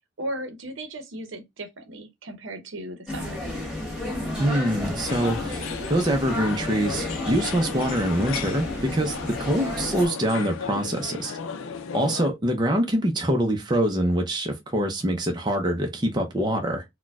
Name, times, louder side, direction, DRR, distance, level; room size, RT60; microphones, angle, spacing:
voice 1, 0.2-3.4, right 1 dB, 70° right, 0.7 m, -36 dB
sound 1, 3.1-10.1, left 1 dB, 5° right, 1.1 m, -32 dB
voice 2, 4.4-11.4 11.9-16.8, right 1 dB, 20° right, 0.5 m, -25 dB
sound 2, 5.0-12.3, left 6 dB, 85° left, 0.5 m, -35 dB
4.2 x 2.2 x 2.3 m
head